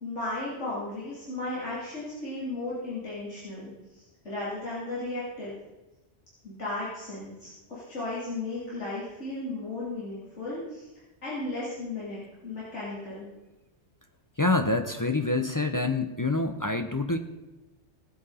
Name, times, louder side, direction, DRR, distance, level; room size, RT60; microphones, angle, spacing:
voice 1, 0.0-5.6 6.4-10.9 11.2-13.3, left 2 dB, 90° left, -9 dB, 3.3 m, -35 dB
voice 2, 14.4-17.2, left 2 dB, 25° left, 7 dB, 0.5 m, -26 dB
18.0 x 7.8 x 4.2 m, 1.1 s
omnidirectional pair, 1.2 m